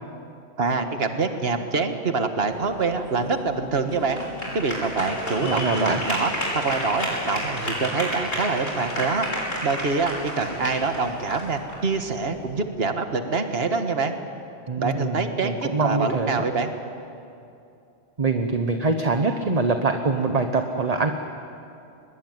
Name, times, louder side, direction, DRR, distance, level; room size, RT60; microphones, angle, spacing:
voice 1, 0.6-4.2 4.5-9.3 9.6-14.1 14.8-15.5 15.8-16.7, right 4 dB, 65° right, 6 dB, 1.8 m, -25 dB
sound 1, 2.5-12.6, equal, 60° left, 5.9 m, -31 dB
voice 2, 5.4-6.0 14.7-16.4 18.2-21.1, right 3 dB, 35° right, 5 dB, 1.2 m, -24 dB
24.0 x 21.5 x 9.5 m, 2.6 s
omnidirectional pair, 1.1 m